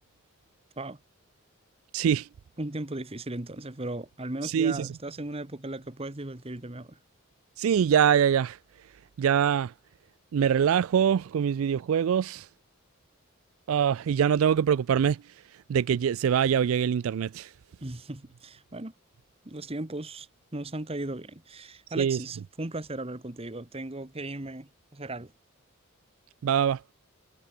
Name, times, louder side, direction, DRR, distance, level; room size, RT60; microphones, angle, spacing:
voice 1, 1.9-2.3 4.4-4.9 7.6-8.6 9.2-9.7 10.3-12.5 13.7-15.2 15.7-17.5 22.0-22.2 26.4-26.9, right 8 dB, 75° right, 0.3 m, -24 dB
voice 2, 2.6-7.0 17.8-18.9 19.4-25.3, right 2 dB, 30° right, 1.2 m, -37 dB
head